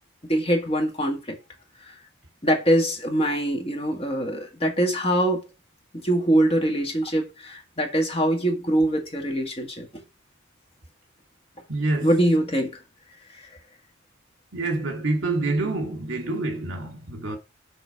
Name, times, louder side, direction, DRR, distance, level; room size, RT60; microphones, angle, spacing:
voice 1, 0.3-1.4 1.9-2.0 2.4-5.4 6.0-10.0 12.0-12.8, right 1 dB, 30° left, 1.7 m, -23 dB
voice 2, 11.7-12.1 14.5-17.4, right 2 dB, 70° right, 2.3 m, -27 dB
6.6 x 4.4 x 5.8 m
head